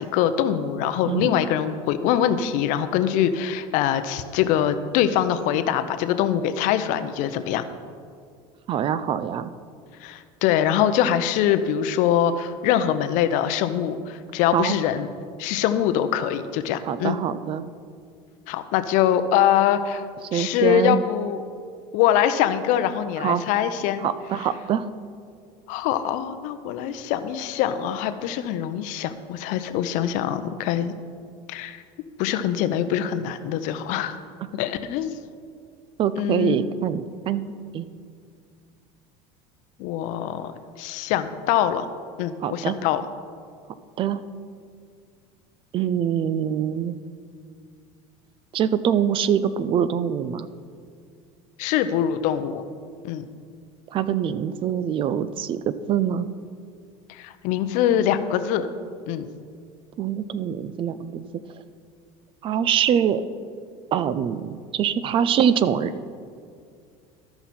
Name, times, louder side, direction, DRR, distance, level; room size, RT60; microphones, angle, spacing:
voice 1, 0.0-7.6 10.0-15.1 15.4-17.2 18.5-20.0 20.3-21.4 21.9-24.0 24.4-24.5 25.7-30.9 31.5-31.8 32.2-34.2 34.5-35.2 36.2-36.6 39.8-41.9 42.2-43.0 51.6-52.6 53.0-53.2 57.1-58.7 59.1-59.3, left 10 dB, 65° left, 10 dB, 0.6 m, -23 dB
voice 2, 8.7-9.5 14.5-14.7 16.9-17.6 20.3-21.0 23.2-23.4 24.0-24.8 36.0-37.9 42.4-42.7 44.0-44.2 45.7-47.0 48.5-50.5 53.9-56.3 60.0-61.2 62.4-63.2 63.9-65.9, right 9 dB, 40° right, 14 dB, 0.4 m, -24 dB
13.5 x 5.8 x 4.2 m, 2.2 s
supercardioid pair, 120°, 14 cm